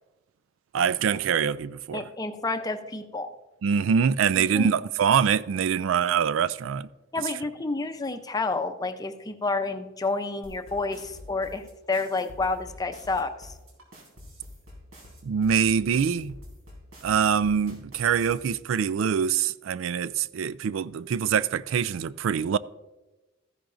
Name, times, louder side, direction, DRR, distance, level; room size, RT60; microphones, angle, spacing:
voice 1, 0.7-2.0 3.6-6.9 15.2-16.4 17.0-22.6, right 7 dB, 70° right, 0.3 m, -24 dB
voice 2, 1.9-3.3 4.5-4.7 7.1-13.5, left 3 dB, 20° left, 0.6 m, -29 dB
sound 1, 10.4-18.4, left 1 dB, 85° right, 3.8 m, -47 dB
14.0 x 10.5 x 2.6 m
head